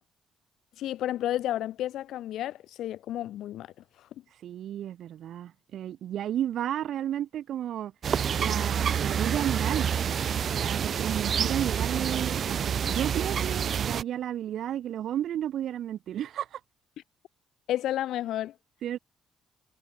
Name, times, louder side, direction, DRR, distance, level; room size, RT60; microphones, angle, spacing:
voice 1, 0.8-4.1 17.7-18.5, left 13 dB, 80° left, 5.1 m, -32 dB
voice 2, 4.3-7.9 8.4-9.9 10.3-16.6 18.8-19.0, right 11 dB, 70° right, 3.3 m, -33 dB
sound 1, 8.0-14.0, right 8 dB, 55° right, 1.0 m, -28 dB
cardioid pair, 90°, 0 cm